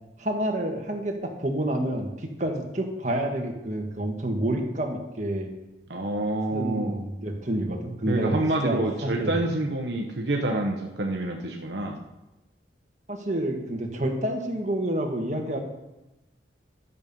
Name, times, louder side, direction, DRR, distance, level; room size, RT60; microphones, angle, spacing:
voice 1, 0.2-5.5 6.5-9.3 13.1-15.6, right 1 dB, 40° right, 2 dB, 1.6 m, -28 dB
voice 2, 5.9-7.0 8.1-12.0, right 2 dB, 65° right, 1 dB, 1.0 m, -27 dB
12.0 x 7.1 x 5.4 m, 0.98 s
head